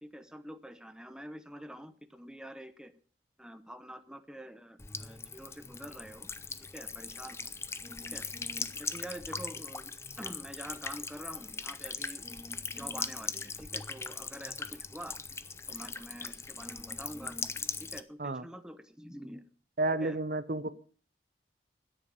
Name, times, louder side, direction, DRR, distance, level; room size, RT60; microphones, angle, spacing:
voice 1, 0.0-2.9 3.4-6.3 6.7-7.5 8.1-8.3 8.8-12.3 12.7-15.2 15.7-17.4 17.8-19.4 20.0-20.2 20.5-20.7, equal, 5° right, 0.9 m, -46 dB
Buzz / Water tap faucet / Trickle dribble, 4.8-18.0, left 4 dB, 15° left, 0.6 m, -40 dB
voice 2, 19.8-20.7, right 2 dB, 50° right, 0.7 m, -31 dB
13.0 x 10.0 x 6.8 m
head